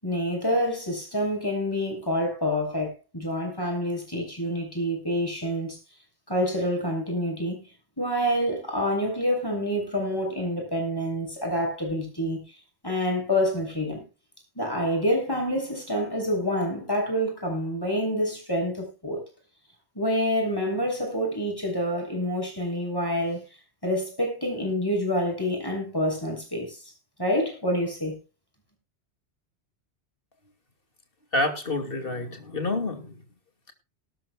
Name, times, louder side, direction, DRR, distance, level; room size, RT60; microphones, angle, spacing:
voice 1, 0.0-5.8 6.3-7.6 8.0-12.4 12.8-14.0 14.6-19.2 19.9-23.4 23.8-26.8 27.2-28.1, equal, 20° left, 6.7 m, -27 dB
voice 2, 31.3-33.2, left 2 dB, 55° left, 2.8 m, -28 dB
19.5 x 12.5 x 2.4 m
omnidirectional pair, 1.1 m